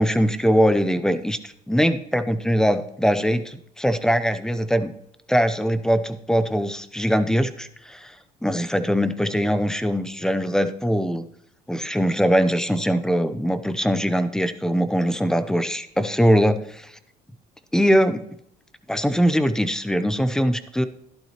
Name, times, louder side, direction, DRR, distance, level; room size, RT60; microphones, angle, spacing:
voice 1, 0.0-4.9 5.3-8.1 8.4-11.2 11.7-16.9 17.7-18.3 18.9-20.9, equal, 5° left, 11 dB, 0.6 m, -22 dB
12.0 x 11.5 x 2.9 m, 0.76 s
cardioid pair, 110°, 17 cm